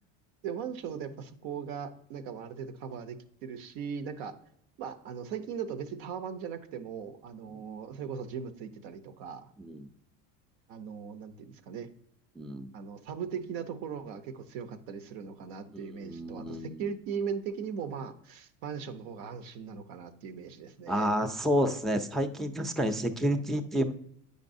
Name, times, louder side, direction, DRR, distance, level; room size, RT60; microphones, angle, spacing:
voice 1, 0.4-4.3 4.8-9.5 10.7-11.9 12.7-21.2, right 7 dB, 85° right, 10 dB, 0.8 m, -39 dB
voice 2, 12.4-12.7 15.7-16.8 20.9-23.9, equal, ahead, 4 dB, 0.4 m, -30 dB
8.2 x 5.2 x 2.6 m, 0.70 s
supercardioid pair, 110°, 36 cm